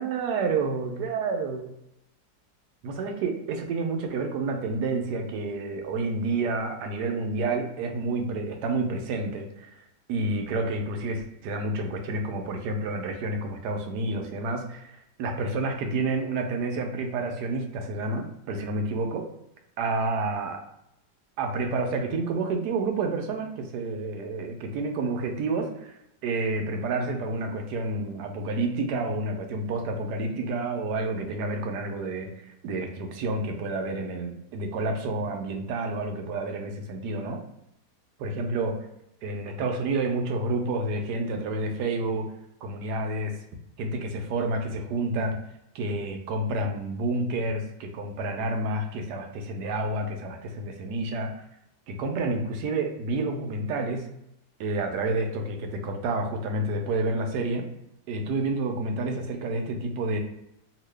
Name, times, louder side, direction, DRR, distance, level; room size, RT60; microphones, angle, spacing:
voice 1, 0.0-1.7 2.8-9.8 10.1-19.3 19.8-20.6 21.4-37.4 38.2-38.9 39.2-42.3 42.6-43.4 43.8-45.4 45.7-51.4 51.9-54.1 54.6-57.7 58.1-60.2, right 2 dB, 70° right, 4 dB, 1.1 m, -29 dB
2.8 x 2.6 x 3.2 m, 0.82 s
omnidirectional pair, 2.0 m